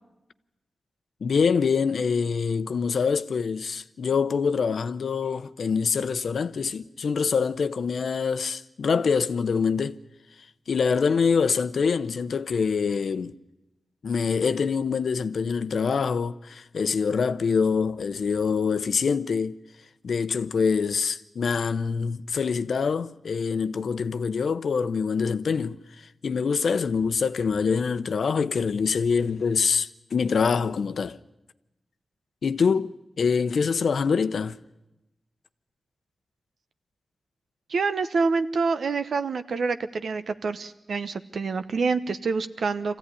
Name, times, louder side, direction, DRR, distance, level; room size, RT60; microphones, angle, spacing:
voice 1, 1.2-10.0 10.7-13.3 14.0-19.6 20.0-31.2 32.4-34.6, left 5 dB, 80° left, 0.7 m, -25 dB
voice 2, 37.7-43.0, right 4 dB, 80° right, 1.0 m, -27 dB
24.5 x 15.5 x 9.9 m
cardioid pair, 55°, 0 cm